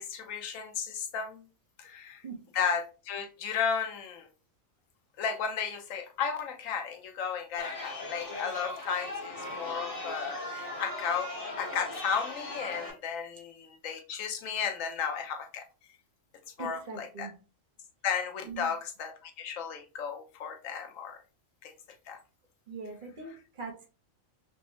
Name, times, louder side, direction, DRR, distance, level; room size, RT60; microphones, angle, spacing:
voice 1, 0.0-1.4 1.8-2.2 2.5-4.3 5.2-11.3 11.6-15.6 16.6-17.3 18.0-21.2 21.6-21.7 22.1-22.2 23.3-23.4, left 6 dB, 80° left, 1.1 m, -34 dB
Chatter, 7.6-12.9, left 2 dB, 30° left, 0.9 m, -38 dB
voice 2, 16.6-17.3 18.5-18.7 22.7-23.9, right 4 dB, 50° right, 0.7 m, -41 dB
4.4 x 2.0 x 2.7 m
omnidirectional pair, 1.3 m